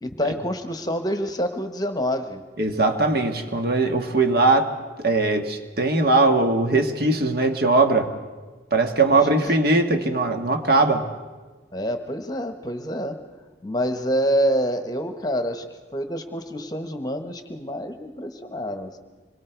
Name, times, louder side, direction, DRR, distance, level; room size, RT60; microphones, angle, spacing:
voice 1, 0.0-2.4 11.7-13.2 13.6-15.6 15.9-19.0, equal, 20° left, 7 dB, 1.1 m, -27 dB
voice 2, 2.6-4.7 5.0-8.1 8.7-11.0, right 2 dB, 55° right, 5 dB, 1.6 m, -20 dB
26.0 x 22.0 x 4.6 m, 1.3 s
head